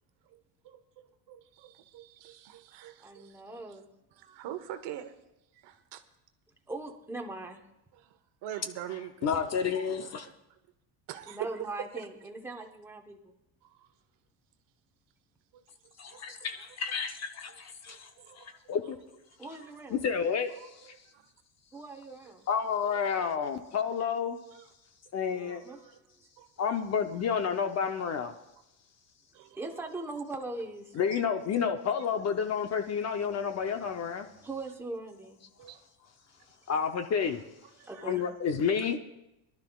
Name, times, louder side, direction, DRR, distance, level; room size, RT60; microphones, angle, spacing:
voice 1, 0.3-3.6 4.2-5.1 5.5-6.0 7.9-9.3 9.9-10.3 11.1-11.5 13.6-13.9 15.5-15.6 16.1-16.2 17.9-18.5 20.6-21.2 21.7-21.8 22.2-22.3 22.8-23.2 24.5-24.7 25.3-26.0 26.4-26.5 29.3-29.8 31.1-31.2 35.6-35.8 37.8-38.1, right 12 dB, 60° right, 8 dB, 1.1 m, -45 dB
voice 2, 3.0-3.9 6.7-7.6 11.3-13.3 19.4-20.0 21.7-22.5 25.4-25.8 29.6-30.9 34.4-35.4 37.8-38.3, right 2 dB, 5° right, 2 dB, 1.0 m, -40 dB
voice 3, 9.2-10.3 16.0-18.1 18.3-19.0 19.9-20.9 22.5-24.4 25.1-25.6 26.6-28.3 31.0-34.3 36.7-37.4 38.0-39.0, left 6 dB, 35° left, 7 dB, 0.6 m, -30 dB
23.0 x 12.0 x 2.3 m, 0.89 s
cardioid pair, 160°, 47 cm